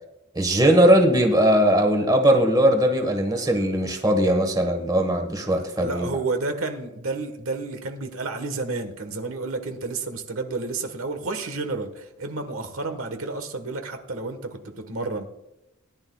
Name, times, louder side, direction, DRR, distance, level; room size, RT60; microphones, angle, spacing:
voice 1, 0.3-6.1, right 1 dB, 20° right, 4 dB, 1.3 m, -19 dB
voice 2, 5.5-15.3, right 3 dB, 75° right, 7 dB, 1.3 m, -31 dB
18.5 x 11.0 x 2.3 m, 0.91 s
head